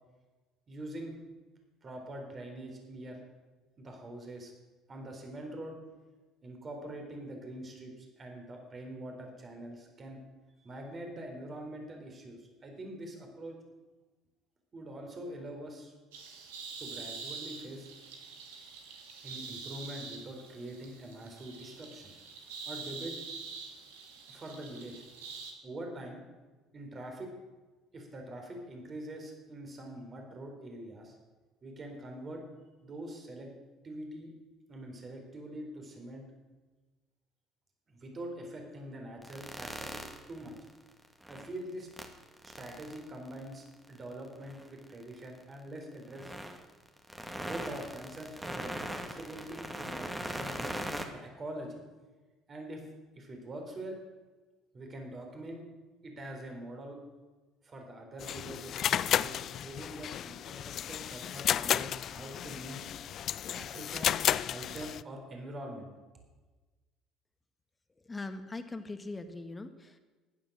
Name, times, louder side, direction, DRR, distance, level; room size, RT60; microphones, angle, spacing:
voice 1, 0.7-1.1 1.8-3.2 3.8-4.5 4.9-5.8 6.4-10.2 10.6-13.6 14.7-15.9 16.8-17.9 19.2-22.1 22.7-23.2 24.3-25.0 25.6-26.2 26.7-27.3 27.9-31.2 31.6-32.5 32.8-33.5 33.8-34.3 34.7-36.2 37.9-40.0 40.3-40.6 41.3-41.9 42.4-46.3 47.4-50.7 51.1-51.8 52.5-54.0 54.7-55.6 56.0-57.0 57.6-62.9 63.5-64.2 64.5-65.9, right 1 dB, 35° right, 2 dB, 4.0 m, -44 dB
sound 1, 16.1-25.5, right 5 dB, 80° right, 2.2 m, -45 dB
sound 2, 39.2-41.6 41.9-45.4 46.1-51.1, right 1 dB, 10° right, 2.1 m, -40 dB
sound 3, 58.2-65.0, left 10 dB, 55° left, 0.4 m, -33 dB
voice 2, 68.0-70.0, left 3 dB, 20° left, 8 dB, 1.8 m, -41 dB
15.0 x 10.5 x 6.4 m, 1.3 s
hypercardioid pair, 65°, 0 cm